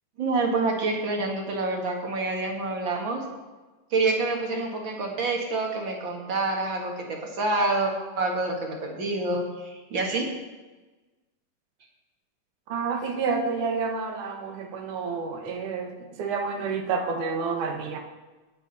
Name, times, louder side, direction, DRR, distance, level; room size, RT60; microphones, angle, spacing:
voice 1, 0.2-3.2 3.9-10.3, right 3 dB, 45° right, 1 dB, 2.0 m, -27 dB
voice 2, 12.7-18.0, right 5 dB, 75° right, 3 dB, 2.8 m, -29 dB
19.0 x 7.3 x 4.1 m, 1.2 s
omnidirectional pair, 3.6 m